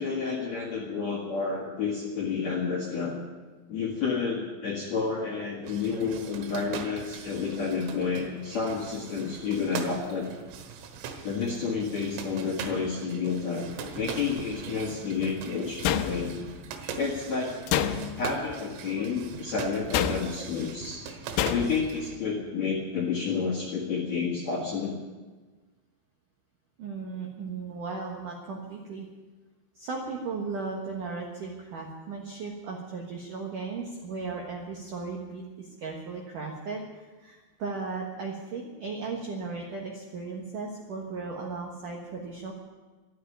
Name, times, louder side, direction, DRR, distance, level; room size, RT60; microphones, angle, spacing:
voice 1, 0.0-3.2 3.7-10.3 11.2-13.7 13.9-16.4 17.0-17.6 18.2-21.0 21.5-25.0, left 5 dB, 55° left, -2 dB, 2.0 m, -30 dB
sound 1, 5.6-22.2, right 6 dB, 85° right, 4.1 m, -41 dB
sound 2, 15.8-16.6 17.7-18.4 19.9-20.5 21.4-21.9, left 9 dB, 80° left, 3.2 m, -28 dB
voice 2, 26.8-29.1 29.8-42.5, right 4 dB, 70° right, 0 dB, 2.0 m, -36 dB
13.0 x 12.0 x 9.0 m, 1.3 s
omnidirectional pair, 6.0 m